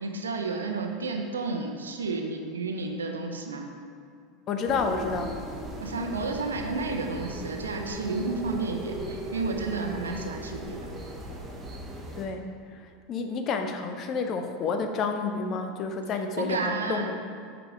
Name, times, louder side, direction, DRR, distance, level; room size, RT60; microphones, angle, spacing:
voice 1, 0.0-3.6 5.8-10.8 16.4-17.1, right 3 dB, 75° right, 3 dB, 0.8 m, -31 dB
voice 2, 4.5-5.3 12.2-17.1, left 4 dB, 35° left, 6 dB, 0.7 m, -30 dB
sound 1, 4.7-12.3, right 1 dB, 15° right, 1.3 m, -38 dB
7.8 x 5.1 x 4.8 m, 2.2 s
figure-of-eight pair, 80°, 0 cm